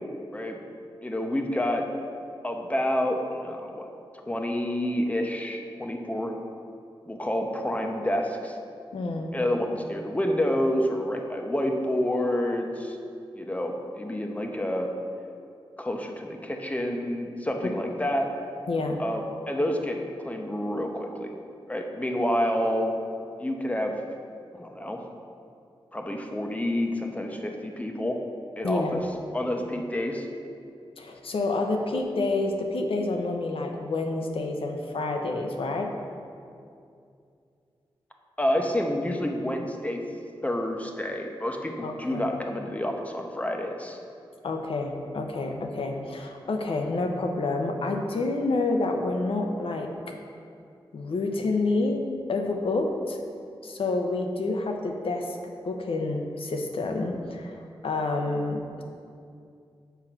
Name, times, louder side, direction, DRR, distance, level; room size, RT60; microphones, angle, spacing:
voice 1, 1.0-1.8 2.4-3.9 4.3-6.3 7.1-8.6 9.3-13.0 13.4-14.9 15.8-18.3 19.0-21.3 21.7-22.9 23.4-23.9 24.5-25.0 25.9-28.2 28.6-29.0 29.3-30.3 38.4-40.0 40.4-44.0, left 1 dB, 15° left, 2 dB, 0.8 m, -28 dB
voice 2, 8.9-9.3 18.7-19.0 28.6-29.0 31.0-35.9 41.8-42.3 44.4-49.9 50.9-52.0 52.3-53.2 53.6-55.4 55.6-58.8, left 2 dB, 80° left, 3 dB, 0.8 m, -28 dB
6.9 x 4.5 x 6.0 m, 2.5 s
wide cardioid pair, 80°, 9 cm